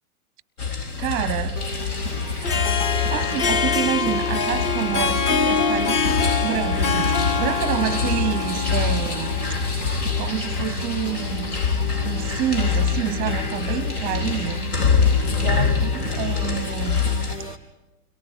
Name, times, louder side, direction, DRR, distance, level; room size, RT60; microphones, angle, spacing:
sound 1, 0.6-17.4, left 6 dB, 75° left, 2.4 m, -25 dB
voice 1, 1.0-1.6 3.1-9.3 10.2-11.6 12.1-14.6 15.4-17.1, right 11 dB, 20° right, 0.6 m, -28 dB
sound 2, 1.6-17.6, equal, 90° left, 3.3 m, -34 dB
Harp, 2.3-9.6, left 5 dB, 30° left, 0.8 m, -25 dB
30.0 x 22.5 x 4.9 m
hypercardioid pair, 115°, 45 cm